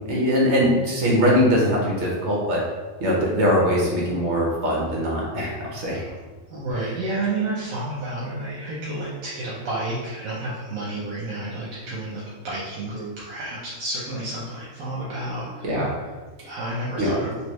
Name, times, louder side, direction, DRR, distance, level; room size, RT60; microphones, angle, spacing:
voice 1, 0.1-2.6 3.0-6.0 6.8-6.9 15.6-15.9 17.0-17.1, equal, 60° right, -3 dB, 1.2 m, -21 dB
voice 2, 6.5-15.8 16.5-17.4, right 2 dB, 85° right, -7 dB, 1.2 m, -30 dB
3.3 x 2.7 x 3.1 m, 1.3 s
omnidirectional pair, 1.4 m